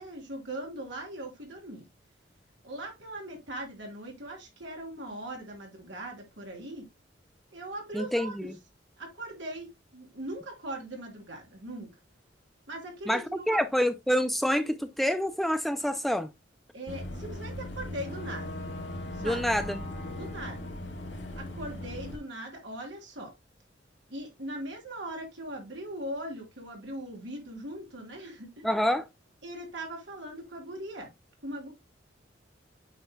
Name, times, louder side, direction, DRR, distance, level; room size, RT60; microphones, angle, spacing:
voice 1, 0.0-1.8 2.6-6.9 7.5-8.5 9.0-11.9 12.7-13.6 16.7-18.5 19.1-19.4 20.2-20.7 21.4-23.3 24.1-28.7 29.4-31.1 31.4-31.7, right 1 dB, 70° right, 3.2 m, -40 dB
voice 2, 7.9-8.5 13.1-16.3 19.2-19.8 28.6-29.0, equal, ahead, 0.4 m, -27 dB
Boat Water vehicle / Engine, 16.9-22.2, left 1 dB, 65° left, 2.0 m, -38 dB
8.9 x 5.8 x 2.2 m
head